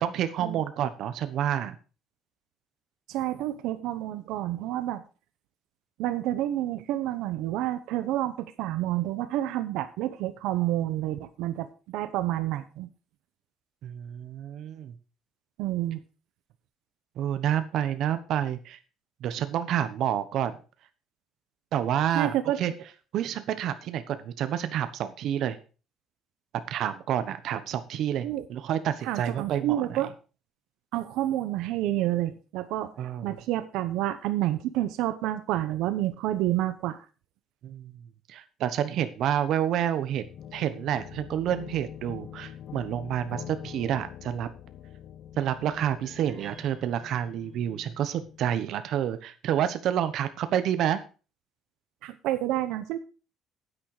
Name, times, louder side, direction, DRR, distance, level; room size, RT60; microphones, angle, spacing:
voice 1, 0.0-1.7 13.8-14.9 17.2-18.8 19.2-20.6 21.7-22.7 23.1-25.6 26.7-30.0 33.0-33.4 37.6-37.9 38.3-44.5 45.4-51.0, right 10 dB, 55° right, 11 dB, 1.1 m, -29 dB
voice 2, 3.1-5.0 6.0-12.9 15.6-16.0 22.1-22.6 28.2-28.4 29.0-30.1 30.9-32.9 33.2-37.0 52.0-53.0, right 14 dB, 85° right, 11 dB, 0.9 m, -29 dB
sound 1, 40.2-48.7, left 10 dB, 50° left, 0.8 m, -45 dB
sound 2, 46.0-47.8, right 4 dB, 30° right, 2.5 m, -55 dB
9.8 x 8.9 x 4.9 m, 0.35 s
cardioid pair, 160°, 0 cm